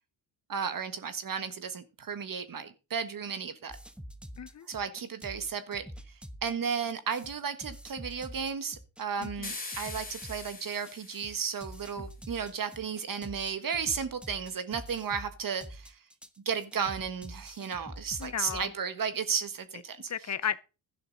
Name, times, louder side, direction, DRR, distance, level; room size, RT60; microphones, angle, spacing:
voice 1, 0.5-3.8 4.7-5.9 6.4-15.9 16.4-20.1, right 6 dB, 45° right, 1.5 m, -34 dB
sound 1, 3.7-18.6, equal, ahead, 1.1 m, -46 dB
voice 2, 9.2-9.5 18.2-18.7 20.1-20.6, left 9 dB, 35° left, 0.9 m, -34 dB
sound 2, 9.4-11.8, left 3 dB, 20° left, 3.0 m, -42 dB
12.0 x 10.5 x 4.0 m
cardioid pair, 85°, 46 cm